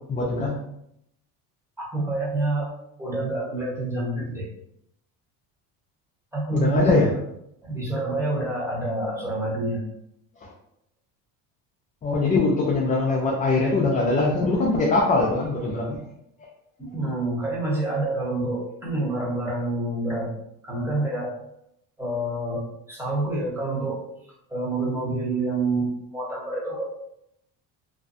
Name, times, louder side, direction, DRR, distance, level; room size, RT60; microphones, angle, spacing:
voice 1, 0.1-0.6 6.5-7.1 12.0-16.0, left 3 dB, 20° left, -3 dB, 0.4 m, -22 dB
voice 2, 1.8-2.7 3.0-4.5 6.3-7.1 7.6-9.8 16.8-20.3 20.6-21.4 22.0-24.0 24.5-26.9, right 2 dB, 5° right, -5 dB, 0.9 m, -27 dB
2.5 x 2.2 x 2.5 m, 0.76 s
cardioid pair, 115°, 36 cm